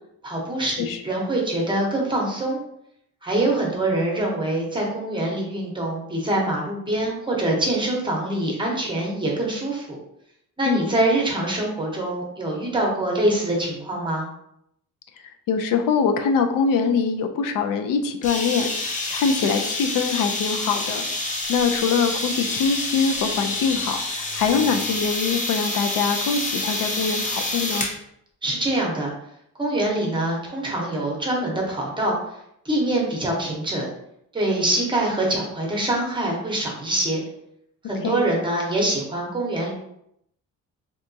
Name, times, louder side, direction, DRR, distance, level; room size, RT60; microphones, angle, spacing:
voice 1, 0.2-2.6 3.2-9.9 10.6-14.3 28.4-29.1 29.6-32.4 32.6-33.8 34.3-37.2 37.8-39.7, right 1 dB, 15° right, -2 dB, 0.8 m, -24 dB
voice 2, 15.5-21.0 21.5-24.0 24.3-27.9 38.0-38.2, left 5 dB, 80° left, 5 dB, 0.5 m, -23 dB
sound 1, 18.2-28.0, left 2 dB, 25° left, 0.6 m, -27 dB
3.4 x 2.8 x 2.6 m, 0.75 s
cardioid pair, 145°, 33 cm